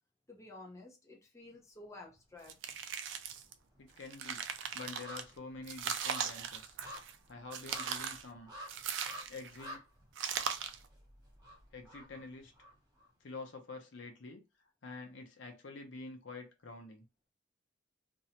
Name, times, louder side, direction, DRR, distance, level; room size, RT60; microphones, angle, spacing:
voice 1, 0.3-2.6, left 2 dB, 15° left, 0.6 m, -52 dB
sound 1, 2.1-2.8 3.1-13.1 13.4-13.5, equal, 20° right, 0.9 m, -52 dB
sound 2, 2.5-3.5 4.0-5.2 5.7-7.2 7.5-8.3 8.7-9.6 10.2-10.8, right 7 dB, 75° right, 0.4 m, -39 dB
voice 2, 3.8-4.4 4.7-6.8 7.3-8.5 9.3-9.8 11.7-12.5 13.2-14.4 14.8-17.0, left 3 dB, 75° left, 0.7 m, -47 dB
2.6 x 2.1 x 2.8 m
head